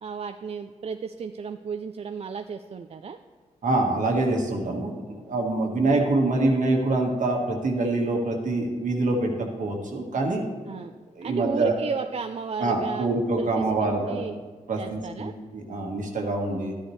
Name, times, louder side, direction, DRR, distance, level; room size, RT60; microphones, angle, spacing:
voice 1, 0.0-3.2 10.7-10.9 11.2-13.1 13.4-14.4 14.8-15.3, right 6 dB, 50° right, 7 dB, 0.4 m, -34 dB
voice 2, 3.6-10.4 11.1-11.7 12.6-14.2 14.7-16.7, right 2 dB, 70° right, 1 dB, 1.6 m, -25 dB
12.0 x 10.0 x 3.2 m, 1.4 s
cardioid pair, 70°, 13 cm